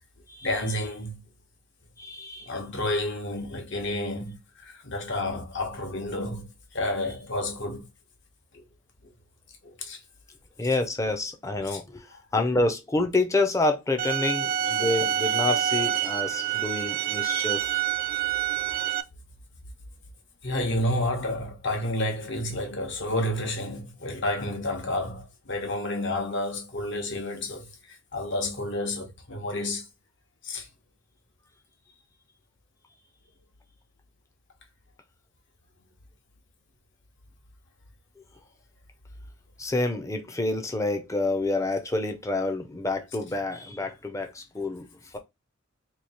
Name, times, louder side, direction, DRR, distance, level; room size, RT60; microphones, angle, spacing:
voice 1, 0.4-1.2 2.4-7.9 8.5-8.6 9.6-10.0 11.6-11.8 20.4-29.9 30.4-30.7, left 1 dB, 60° left, 1.2 m, -30 dB
voice 2, 2.0-2.5 10.6-12.0 12.3-17.8 39.6-44.9, left 2 dB, 15° left, 0.6 m, -28 dB
sound 1, 14.0-19.0, right 10 dB, 40° right, 0.5 m, -27 dB
3.1 x 2.8 x 4.2 m
head